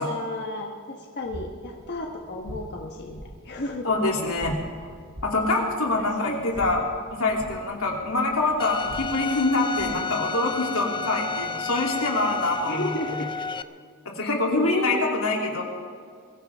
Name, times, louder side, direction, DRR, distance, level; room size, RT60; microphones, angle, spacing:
voice 1, 0.0-3.9 6.0-6.4 6.6-6.7 12.7-13.4 14.2-15.2, left 1 dB, 55° left, 0 dB, 1.4 m, -32 dB
sound 1, 1.2-10.1, equal, 45° right, 2.3 m, -44 dB
voice 2, 3.8-4.6 5.2-12.9 14.0-15.6, left 2 dB, 85° left, 0 dB, 3.0 m, -25 dB
Bowed string instrument, 8.6-13.6, left 5 dB, 25° left, 0.4 m, -32 dB
23.0 x 15.5 x 3.6 m, 2.2 s
head